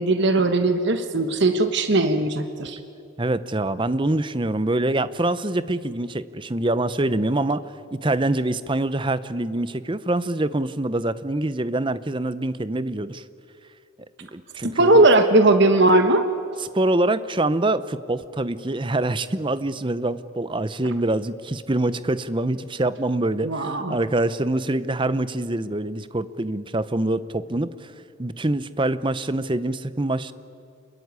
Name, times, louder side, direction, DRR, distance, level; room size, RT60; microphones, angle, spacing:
voice 1, 0.0-2.8 14.8-16.3 23.4-24.0, right 2 dB, 55° right, 7 dB, 1.3 m, -18 dB
voice 2, 3.2-7.6 7.9-13.2 14.2-15.0 16.7-27.9 28.2-30.3, right 2 dB, 25° right, 14 dB, 0.7 m, -25 dB
27.0 x 22.0 x 9.6 m, 2.5 s
head